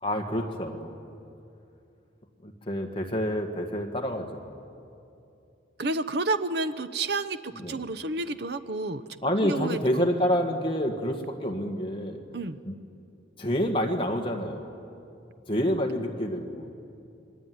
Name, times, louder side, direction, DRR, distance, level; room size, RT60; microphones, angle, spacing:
voice 1, 0.0-0.9 2.4-4.5 7.6-7.8 9.2-12.2 12.7-12.8 13.4-14.7 15.5-16.7, equal, 25° left, 3 dB, 1.9 m, -28 dB
voice 2, 5.8-9.0 9.4-10.1 12.3-12.6, right 2 dB, 55° right, 12 dB, 0.8 m, -30 dB
27.5 x 21.5 x 9.5 m, 2.7 s
head